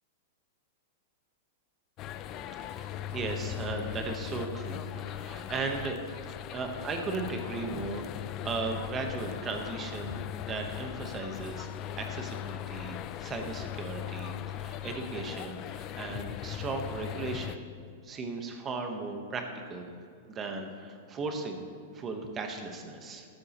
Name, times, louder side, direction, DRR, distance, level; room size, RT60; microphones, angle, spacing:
sound 1, 2.0-17.6, left 10 dB, 25° left, 0.3 m, -39 dB
voice 1, 2.5-8.1 8.4-11.7 12.0-17.7 18.0-19.9 20.3-21.6 21.9-23.3, right 3 dB, 15° right, 4 dB, 1.1 m, -37 dB
13.0 x 12.5 x 3.0 m, 2.5 s
supercardioid pair, 170°, 0 cm